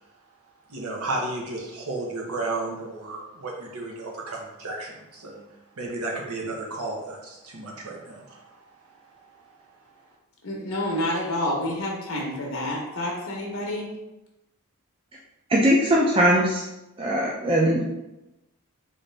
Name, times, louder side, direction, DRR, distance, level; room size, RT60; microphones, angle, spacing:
voice 1, 0.7-5.4 5.8-8.4, right 2 dB, 85° right, -1 dB, 0.8 m, -33 dB
voice 2, 10.4-13.9, left 1 dB, 70° left, -1 dB, 0.7 m, -28 dB
voice 3, 15.5-16.6 17.0-17.9, equal, 25° right, -4 dB, 0.3 m, -20 dB
3.9 x 2.6 x 3.2 m, 0.95 s
head